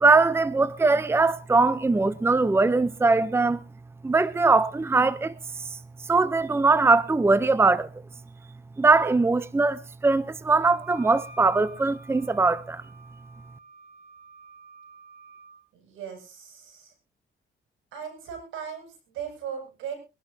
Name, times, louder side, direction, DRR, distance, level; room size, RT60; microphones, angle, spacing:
voice 1, 0.0-3.6 4.0-5.3 6.1-7.9 8.8-12.8, right 3 dB, 10° right, 0.7 m, -21 dB
Wind instrument woodwind instrument, 10.6-15.6, right 2 dB, 50° right, 7.3 m, -49 dB
voice 2, 15.7-16.9 17.9-20.0, right 7 dB, 85° right, 7.3 m, -38 dB
23.0 x 12.0 x 2.8 m
cardioid pair, 90°, 20 cm